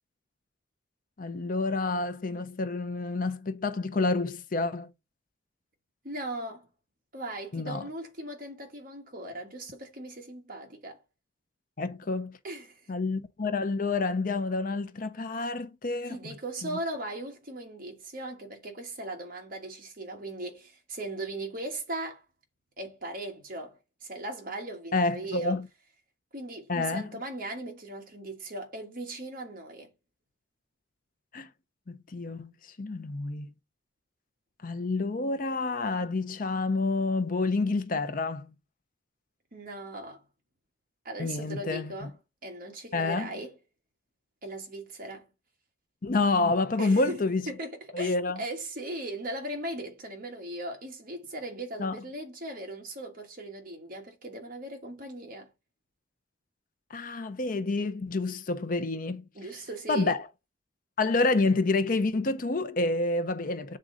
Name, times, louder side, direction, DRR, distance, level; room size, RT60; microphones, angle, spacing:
voice 1, 1.2-4.9 7.5-7.9 11.8-12.4 12.9-16.4 16.6-16.8 24.9-25.7 26.7-27.1 31.3-31.5 31.9-33.5 34.6-38.5 41.2-42.1 42.9-43.3 46.0-47.4 47.9-48.4 51.8-52.0 56.9-59.2 59.9-60.2 61.0-63.8, left 3 dB, 45° left, 0.6 m, -28 dB
voice 2, 6.0-6.7 7.1-11.0 12.4-12.9 16.1-22.2 22.8-25.6 26.3-29.9 39.5-40.2 41.0-42.1 42.4-43.5 44.4-45.3 46.8-47.2 47.5-55.5 59.3-60.2, right 1 dB, 45° right, 1.6 m, -38 dB
7.5 x 3.8 x 3.8 m
head